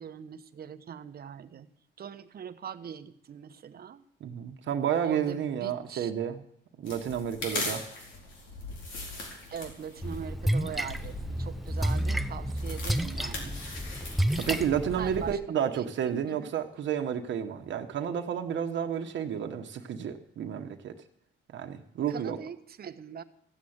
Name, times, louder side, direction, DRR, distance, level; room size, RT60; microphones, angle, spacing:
voice 1, 0.0-1.7 2.0-4.0 5.0-6.1 9.5-13.6 15.0-16.5 22.1-23.2, right 8 dB, 50° right, 10 dB, 1.1 m, -41 dB
voice 2, 4.2-6.4 6.8-7.8 14.4-20.9 21.5-22.4, right 8 dB, 70° right, 5 dB, 1.3 m, -31 dB
sound 1, 6.8-14.6, left 2 dB, 70° left, 4.6 m, -40 dB
Splash splatter, 10.0-15.3, equal, ahead, 0.7 m, -31 dB
15.0 x 7.9 x 8.8 m, 0.72 s
cardioid pair, 90°, 20 cm